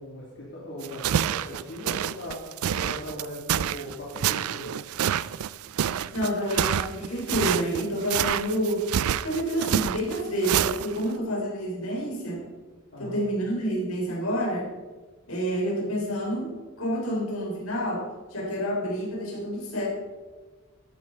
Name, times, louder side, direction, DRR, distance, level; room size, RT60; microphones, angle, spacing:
voice 1, 0.0-2.4 2.7-4.7 12.9-13.3 15.8-16.0, equal, 55° left, -6 dB, 2.8 m, -39 dB
sound 1, 0.8-11.1, right 9 dB, 85° right, 0.4 m, -27 dB
voice 2, 5.9-8.9 9.2-12.4 13.0-14.7 15.3-16.5 16.8-18.0 18.3-19.9, equal, 80° left, -2 dB, 4.3 m, -28 dB
13.0 x 11.0 x 4.0 m, 1.3 s
head